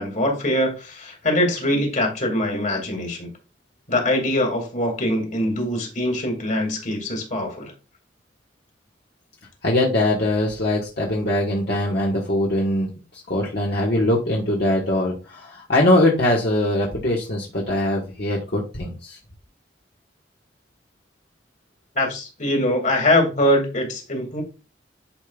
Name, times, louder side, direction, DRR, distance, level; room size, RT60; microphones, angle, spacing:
voice 1, 0.0-3.3 3.9-7.7 21.9-24.4, left 1 dB, 45° left, 2.4 m, -23 dB
voice 2, 9.6-19.2, left 1 dB, 60° left, 1.5 m, -22 dB
10.5 x 5.2 x 2.4 m
head